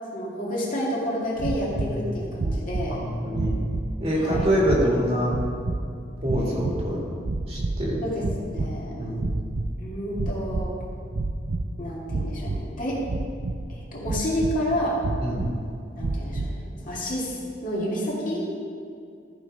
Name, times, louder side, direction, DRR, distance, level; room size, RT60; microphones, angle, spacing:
voice 1, 0.1-3.0 4.2-4.5 8.0-8.9 9.8-10.8 11.8-13.0 13.7-15.0 16.0-17.4 17.6-18.5, equal, 45° left, -5 dB, 2.2 m, -29 dB
sound 1, 1.4-2.0 2.3-3.0 3.3-3.9 4.3-4.9 5.3-5.8 6.2-6.9 7.2-7.9 8.2-8.8 9.1-9.7 10.1-10.8 11.1-11.7 12.1-12.6 13.1-13.7 14.0-14.6 15.0-15.5 16.0-16.6, right 2 dB, 65° right, 0.5 m, -29 dB
voice 2, 2.9-3.6 4.0-5.4 6.2-7.2 7.5-8.0 9.0-9.4 15.2-15.4, equal, 35° right, -3 dB, 1.9 m, -25 dB
14.0 x 5.2 x 5.0 m, 2.3 s
head